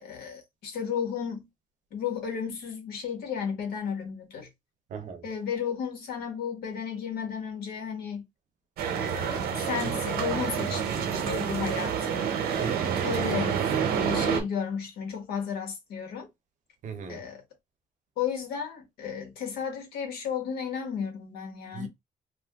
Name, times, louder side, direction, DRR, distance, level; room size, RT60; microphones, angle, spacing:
voice 1, 0.0-1.5 1.9-4.5 5.2-8.2 9.0-12.3 13.0-13.6 13.9-16.3 17.1-17.4 18.2-21.9, left 7 dB, 90° left, 1.3 m, -33 dB
voice 2, 4.9-5.3 12.6-13.2 16.8-17.3 21.7-21.9, right 6 dB, 50° right, 0.7 m, -38 dB
sound 1, 8.8-14.4, right 7 dB, 90° right, 0.8 m, -28 dB
2.6 x 2.4 x 3.4 m
cardioid pair, 160°, 16 cm